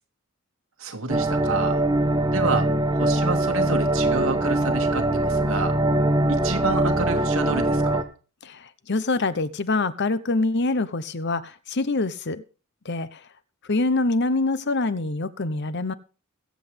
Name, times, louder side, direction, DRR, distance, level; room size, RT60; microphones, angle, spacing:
voice 1, 0.8-1.8 2.3-5.8 6.3-8.1, right 3 dB, 90° right, 2.3 m, -29 dB
sound 1, 1.1-8.0, right 1 dB, 20° right, 1.3 m, -22 dB
voice 2, 8.4-12.4 12.8-13.2 13.7-15.9, left 3 dB, 55° left, 1.0 m, -25 dB
21.5 x 8.1 x 3.5 m
head